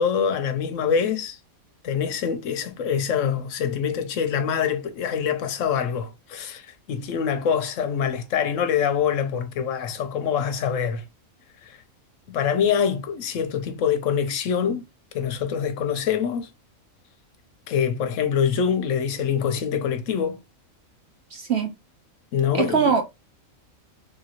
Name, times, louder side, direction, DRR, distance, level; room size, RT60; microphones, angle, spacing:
voice 1, 0.0-1.4 1.8-11.0 11.6-11.8 12.3-14.8 15.1-16.5 17.7-20.4 22.3-22.9, left 7 dB, 70° left, 0.9 m, -25 dB
voice 2, 21.3-21.7 22.5-23.0, right 6 dB, 65° right, 0.7 m, -22 dB
3.2 x 2.7 x 2.8 m
omnidirectional pair, 1.5 m